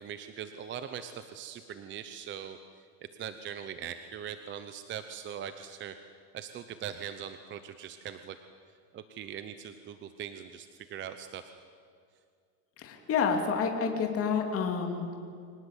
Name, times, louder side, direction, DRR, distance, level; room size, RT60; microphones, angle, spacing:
voice 1, 0.0-2.8 3.2-6.0 6.3-8.4 8.9-11.5, right 8 dB, 25° right, 10 dB, 0.8 m, -41 dB
voice 2, 12.8-15.2, left 5 dB, 30° left, 3 dB, 2.8 m, -29 dB
25.0 x 18.5 x 8.3 m, 2.3 s
supercardioid pair, 140°, 48 cm